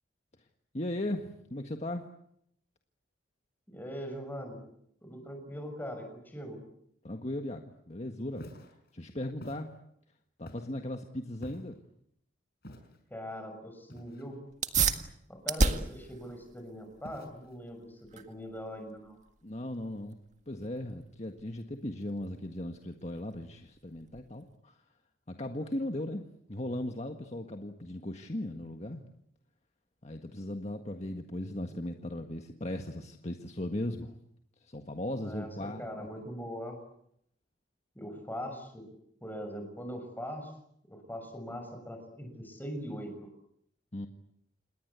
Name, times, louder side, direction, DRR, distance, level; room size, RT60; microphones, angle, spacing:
voice 1, 0.7-2.1 7.0-8.5 8.9-9.7 10.4-11.8 19.4-20.2 20.5-24.8 25.3-29.0 30.0-34.1 34.6-35.8 43.9-44.1, left 1 dB, 35° left, 4 dB, 1.7 m, -37 dB
voice 2, 3.7-4.6 5.0-6.6 13.1-14.4 15.3-19.2 35.2-35.5 35.8-36.8 37.9-38.9 39.2-40.5 40.9-43.3, equal, 10° left, 5 dB, 6.6 m, -41 dB
Walk footsteps, 8.3-8.7 9.4-9.6 10.5-10.8 11.4-11.8 12.6-13.0 13.9-14.4 14.8-15.1 15.6-16.1 17.0-17.5, equal, 55° left, 5.2 m, -47 dB
sound 1, 14.5-24.6, right 4 dB, 40° right, 1.8 m, -35 dB
28.5 x 21.0 x 8.4 m, 0.74 s
head